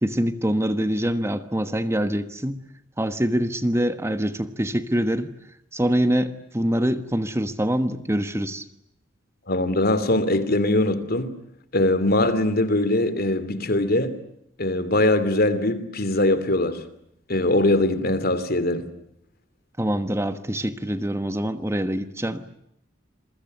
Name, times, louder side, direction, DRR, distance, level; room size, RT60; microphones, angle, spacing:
voice 1, 0.0-2.6 3.0-5.3 5.7-8.7 19.8-22.5, equal, 15° right, 1.3 m, -24 dB
voice 2, 9.5-11.4 11.7-14.2 14.6-16.8 17.3-18.9, left 1 dB, 55° left, 2.9 m, -22 dB
28.0 x 23.0 x 9.3 m
head